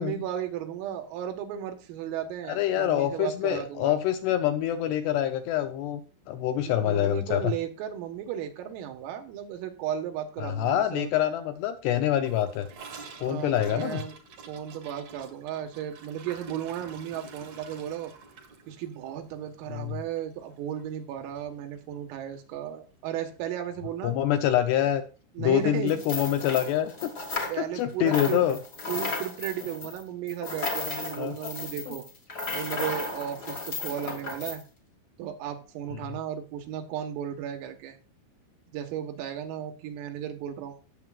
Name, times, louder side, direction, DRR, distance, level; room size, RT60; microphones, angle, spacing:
voice 1, 0.0-4.0 6.6-11.1 13.2-14.2 14.5-18.1 18.7-24.1 25.4-26.0 27.5-28.4 28.9-32.1 32.5-34.6 35.2-38.0 38.7-40.8, right 10 dB, 85° right, 5 dB, 4.2 m, -35 dB
voice 2, 2.5-6.0 6.3-7.5 10.4-12.7 13.2-14.0 19.7-20.0 24.0-25.0 25.4-27.1 27.8-28.6 31.2-31.3 31.9-32.0, left 11 dB, 80° left, 9 dB, 2.5 m, -26 dB
Gurgling / Toilet flush, 12.2-20.5 20.8-20.9 21.2-21.6 21.9-22.0 22.3-22.4 23.4-23.5, right 4 dB, 60° right, 1.8 m, -48 dB
sound 1, 25.9-27.8 28.1-34.6, left 3 dB, 50° left, 1.2 m, -34 dB
18.0 x 7.4 x 2.4 m, 0.35 s
omnidirectional pair, 5.8 m